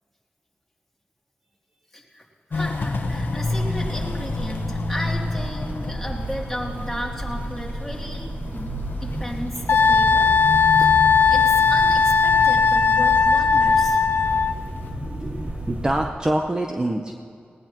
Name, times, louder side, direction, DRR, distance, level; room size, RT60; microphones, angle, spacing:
voice 1, 1.9-11.0 11.3-14.0, equal, 5° left, -3 dB, 2.9 m, -35 dB
Walk footsteps, 2.5-14.9, left 2 dB, 65° left, 1.0 m, -32 dB
sound 1, 2.9-16.1, right 1 dB, 50° right, 2.4 m, -32 dB
Wind instrument woodwind instrument, 9.7-14.5, left 5 dB, 85° left, 0.7 m, -17 dB
voice 2, 15.0-17.1, right 1 dB, 20° right, 2 dB, 0.8 m, -26 dB
19.0 x 18.5 x 3.0 m, 2.4 s
wide cardioid pair, 80°, 4 cm